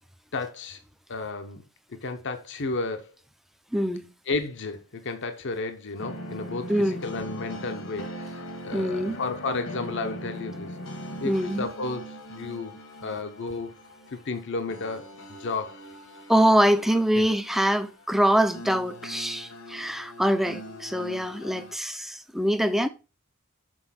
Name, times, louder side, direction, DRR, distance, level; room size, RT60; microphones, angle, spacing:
voice 1, 0.3-0.8 1.1-1.6 2.0-3.1 4.3-10.7 11.2-13.7 14.1-15.8 17.2-17.3, left 3 dB, 55° left, 0.8 m, -33 dB
voice 2, 3.7-4.1 6.7-7.0 8.7-9.1 11.2-11.7 16.3-22.9, equal, ahead, 0.5 m, -24 dB
sound 1, 6.0-21.8, equal, 75° left, 1.5 m, -41 dB
6.2 x 4.3 x 5.8 m
head